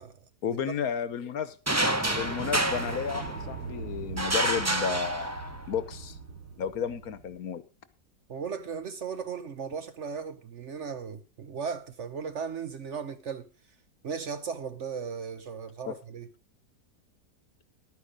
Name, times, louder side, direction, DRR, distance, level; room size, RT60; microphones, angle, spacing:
voice 1, 0.4-1.6 2.1-5.3 5.7-6.2 6.6-7.6 15.9-16.0, left 7 dB, 65° left, 1.3 m, -32 dB
sound 1, 1.7-3.6 4.2-5.7, right 1 dB, 15° right, 0.7 m, -29 dB
sound 2, 2.0-7.4, right 4 dB, 80° right, 2.8 m, -41 dB
voice 2, 8.3-13.5 14.0-16.3, right 6 dB, 55° right, 1.0 m, -36 dB
12.0 x 9.4 x 5.1 m
omnidirectional pair, 1.7 m